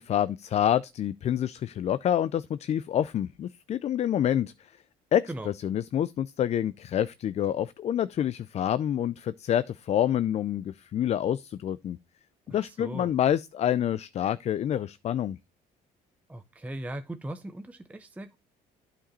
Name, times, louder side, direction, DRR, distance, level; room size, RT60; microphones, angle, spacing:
voice 1, 0.0-4.5 5.1-12.0 12.5-15.4, left 10 dB, 40° left, 0.4 m, -27 dB
voice 2, 12.5-13.1 16.3-18.4, right 1 dB, 10° right, 0.5 m, -39 dB
8.8 x 5.1 x 4.0 m
cardioid pair, 110°, 17 cm